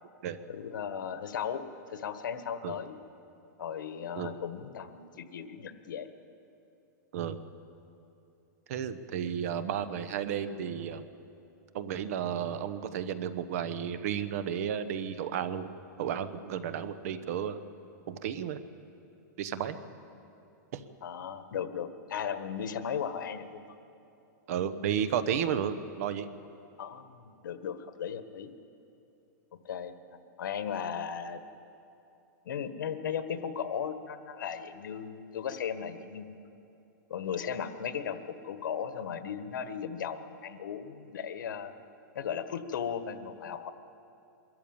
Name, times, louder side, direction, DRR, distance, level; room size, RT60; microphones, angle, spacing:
voice 1, 0.5-2.9 3.6-6.1 21.0-23.7 26.8-28.5 29.6-29.9 30.4-31.4 32.4-36.4 37.1-41.7 42.1-43.7, left 7 dB, 80° left, 10 dB, 1.4 m, -36 dB
voice 2, 8.7-11.0 11.7-15.7 16.0-17.6 18.1-18.6 19.4-19.8 20.7-20.8 24.5-26.3, right 8 dB, 50° right, 12 dB, 1.1 m, -33 dB
23.5 x 14.0 x 9.0 m, 2.7 s
supercardioid pair, 165°, 10 cm